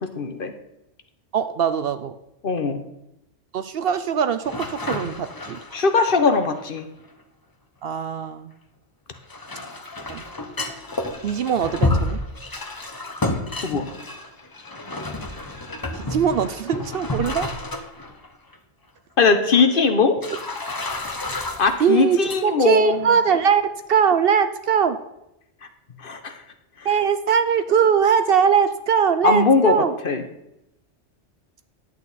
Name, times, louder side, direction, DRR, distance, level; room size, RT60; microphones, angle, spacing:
voice 1, 0.2-0.5 2.4-2.8 5.7-6.9 13.6-13.9 19.2-20.2 21.6-23.1 26.0-26.3 29.2-30.2, left 4 dB, 50° left, 8 dB, 1.0 m, -20 dB
voice 2, 1.3-2.1 3.5-5.6 7.8-8.5 10.1-10.2 11.2-12.2 15.9-17.5 21.8-25.0 26.8-29.9, right 7 dB, 65° right, 11 dB, 0.7 m, -21 dB
sound 1, 4.4-7.1 9.1-18.3 18.5-18.6 19.5-19.7 20.2-22.4 22.8-23.1, left 2 dB, 20° left, 0.7 m, -30 dB
11.0 x 8.4 x 4.1 m, 0.86 s
omnidirectional pair, 1.2 m